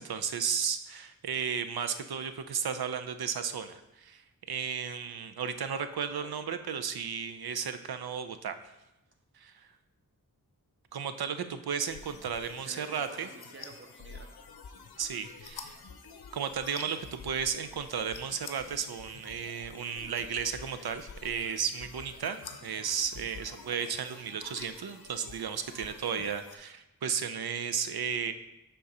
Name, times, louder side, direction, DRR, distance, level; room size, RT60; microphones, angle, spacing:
voice 1, 0.0-4.2 4.5-8.5 9.4-9.7 10.9-13.3 15.0-15.8 16.3-28.3, right 7 dB, 80° right, 10 dB, 0.6 m, -34 dB
voice 2, 6.1-6.6 12.4-14.3, right 3 dB, 35° right, 3 dB, 1.0 m, -50 dB
sound 1, 11.9-26.6, left 5 dB, 80° left, 0.7 m, -49 dB
6.8 x 3.8 x 5.4 m, 0.93 s
wide cardioid pair, 60°, 37 cm